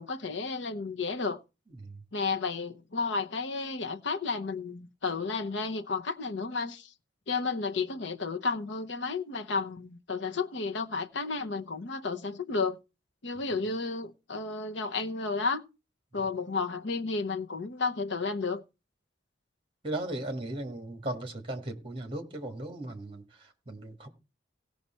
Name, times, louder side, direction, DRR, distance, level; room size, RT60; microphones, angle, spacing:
voice 1, 0.0-1.4 2.1-6.9 7.3-12.8 13.2-15.6 16.1-18.6, left 4 dB, 70° left, 0.9 m, -32 dB
voice 2, 19.8-24.1, right 1 dB, 25° right, 1.6 m, -37 dB
17.0 x 5.8 x 4.3 m
head